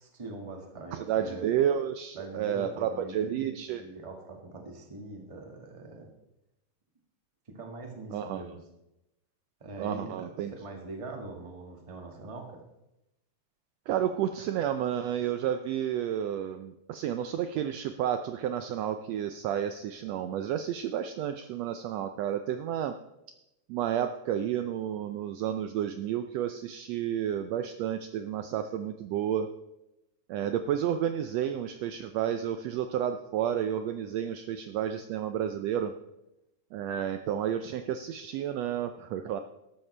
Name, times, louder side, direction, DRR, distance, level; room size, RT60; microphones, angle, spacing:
voice 1, 0.0-1.5 2.2-6.1 7.5-8.6 9.6-12.6, right 3 dB, 15° right, 1 dB, 1.1 m, -42 dB
voice 2, 0.9-3.8 8.1-8.4 9.8-10.5 13.9-22.9 23.7-29.5 30.3-35.9 36.7-39.4, right 10 dB, 80° right, 8 dB, 1.6 m, -31 dB
13.0 x 12.5 x 3.3 m, 0.90 s
omnidirectional pair, 3.4 m